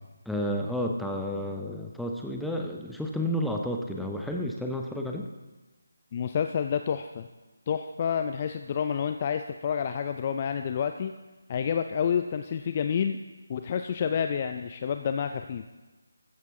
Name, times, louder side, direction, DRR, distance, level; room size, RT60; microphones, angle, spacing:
voice 1, 0.3-5.3, equal, ahead, 0 dB, 0.7 m, -31 dB
voice 2, 6.1-7.3 7.7-11.1 11.5-13.2 13.5-15.6, left 7 dB, 30° left, 8 dB, 0.5 m, -29 dB
14.0 x 14.0 x 3.7 m, 1.2 s
figure-of-eight pair, 155°, 0 cm